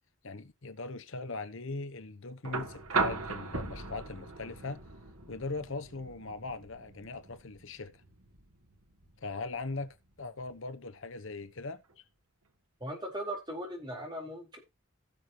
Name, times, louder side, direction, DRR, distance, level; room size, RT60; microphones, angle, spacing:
voice 1, 0.2-4.8 5.3-7.9 9.2-12.0, left 3 dB, 60° left, 1.0 m, -40 dB
sound 1, 2.4-10.5 11.9-12.0, right 4 dB, 80° right, 1.6 m, -38 dB
voice 2, 12.8-14.6, right 1 dB, 20° right, 4.2 m, -38 dB
17.0 x 6.8 x 3.0 m
head